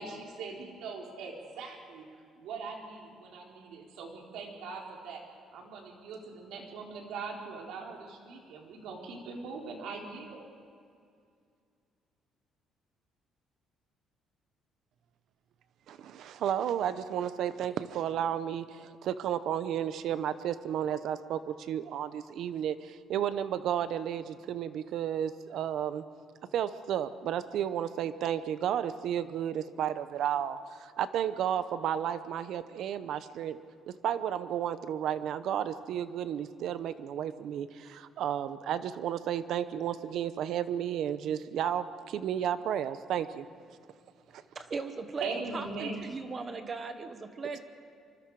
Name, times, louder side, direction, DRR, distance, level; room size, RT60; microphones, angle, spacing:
voice 1, 0.0-5.2 5.5-10.4 45.2-46.0, right 4 dB, 75° right, 0 dB, 3.8 m, -41 dB
voice 2, 15.9-26.0 26.5-33.6 34.0-43.5, right 9 dB, 60° right, 13 dB, 0.8 m, -32 dB
voice 3, 44.5-45.3 45.5-47.6, right 4 dB, 25° right, 8 dB, 1.2 m, -38 dB
25.0 x 25.0 x 4.8 m, 2.3 s
cardioid pair, 165°, 0 cm